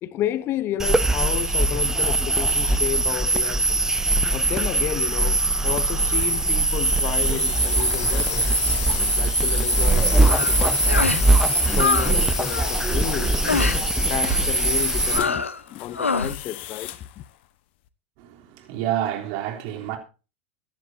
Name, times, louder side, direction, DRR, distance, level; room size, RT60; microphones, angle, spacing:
voice 1, 0.0-3.8 4.3-8.5 9.2-11.2 11.7-17.2, left 12 dB, 35° left, 0.8 m, -31 dB
sound 1, 0.8-15.2, right 2 dB, 10° right, 0.8 m, -21 dB
sound 2, 5.5-17.1, left 15 dB, 55° left, 1.2 m, -32 dB
sound 3, 10.2-10.6 10.9-11.3 11.5-12.1 12.4-12.7 13.5-13.8 14.2-14.5 15.1-15.6 15.9-16.4, left 4 dB, 85° left, 1.0 m, -25 dB
voice 2, 18.2-20.0, right 12 dB, 50° right, 3.4 m, -29 dB
22.5 x 10.5 x 2.7 m
figure-of-eight pair, 90°, 7 cm